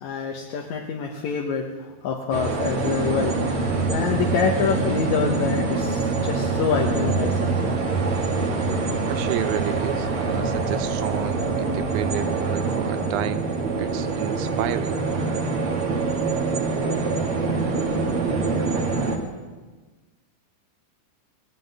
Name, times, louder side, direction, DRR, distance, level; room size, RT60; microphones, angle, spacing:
voice 1, 0.0-7.7, left 6 dB, 70° left, 0 dB, 2.4 m, -26 dB
sound 1, 2.3-19.2, right 3 dB, 50° right, 2.5 m, -25 dB
voice 2, 9.1-13.5 13.8-15.0, right 13 dB, 80° right, 12 dB, 2.0 m, -31 dB
18.0 x 8.0 x 9.5 m, 1.3 s
omnidirectional pair, 3.5 m